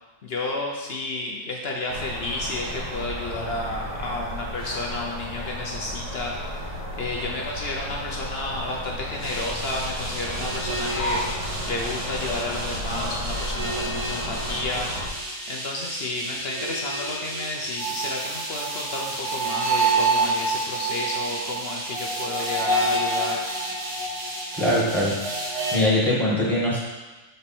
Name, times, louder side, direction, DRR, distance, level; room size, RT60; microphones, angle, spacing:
voice 1, 0.2-14.9 15.5-23.4, left 2 dB, 55° left, -1 dB, 0.7 m, -31 dB
sound 1, 1.9-15.1, equal, 90° right, 2.6 m, -33 dB
sound 2, 9.2-25.8, right 2 dB, 75° right, 2.1 m, -29 dB
voice 2, 24.6-25.5 25.7-26.8, left 1 dB, ahead, -7 dB, 1.6 m, -22 dB
6.5 x 4.4 x 4.3 m, 1.2 s
omnidirectional pair, 1.6 m